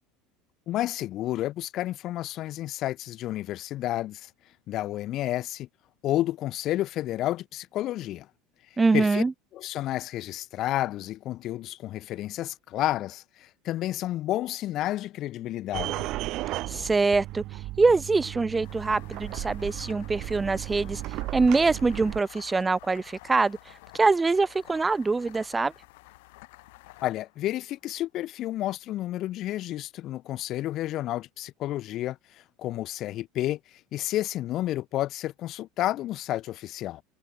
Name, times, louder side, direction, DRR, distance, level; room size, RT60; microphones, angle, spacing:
voice 1, 0.7-4.3 4.7-5.7 6.0-8.3 8.9-9.2 9.5-16.1 27.0-32.2 32.6-33.6 33.9-37.0, left 14 dB, 45° left, 0.6 m, -31 dB
voice 2, 8.8-9.3 16.7-17.4 17.8-21.0 21.3-23.6 23.9-25.7, right 3 dB, 10° right, 0.5 m, -24 dB
sound 1, 15.7-22.2, right 17 dB, 50° right, 1.5 m, -35 dB
sound 2, 18.6-28.0, left 24 dB, 75° left, 6.2 m, -51 dB
open air
supercardioid pair, 140°, 0 cm